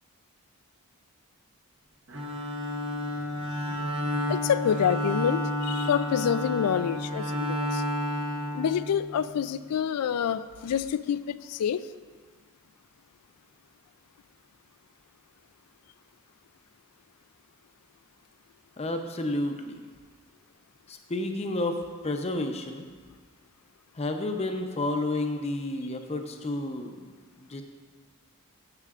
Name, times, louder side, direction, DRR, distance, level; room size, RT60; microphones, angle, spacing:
Bowed string instrument, 2.1-9.3, left 1 dB, 55° right, 1.1 m, -31 dB
voice 1, 4.2-7.8 8.5-11.9, left 8 dB, 85° left, 14 dB, 0.3 m, -27 dB
voice 2, 18.8-19.8 20.9-22.9 23.9-27.1 27.4-27.6, left 2 dB, 30° left, 5 dB, 0.6 m, -31 dB
13.5 x 6.8 x 2.4 m, 1.5 s
head